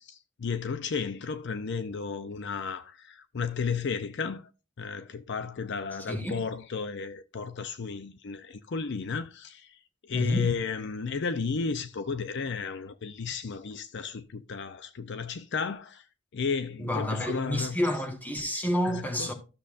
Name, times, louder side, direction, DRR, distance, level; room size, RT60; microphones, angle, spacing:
voice 1, 0.0-4.5 4.8-16.1 16.3-17.8 18.8-19.3, left 5 dB, 55° left, 0.5 m, -33 dB
voice 2, 6.1-6.4 10.1-10.5 16.8-19.3, equal, 10° left, 1.3 m, -29 dB
14.0 x 6.8 x 2.5 m
head